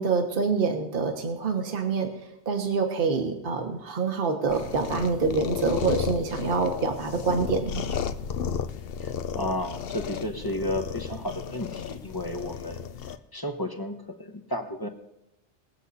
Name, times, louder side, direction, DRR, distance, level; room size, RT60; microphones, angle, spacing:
voice 1, 0.0-2.1 2.5-7.8, right 4 dB, 50° right, 5 dB, 1.4 m, -26 dB
sound 1, 4.5-13.2, left 7 dB, 60° left, 0.8 m, -33 dB
voice 2, 9.0-12.9 13.3-14.9, left 1 dB, 20° left, 5 dB, 0.9 m, -33 dB
21.0 x 8.1 x 4.1 m, 0.86 s
omnidirectional pair, 1.2 m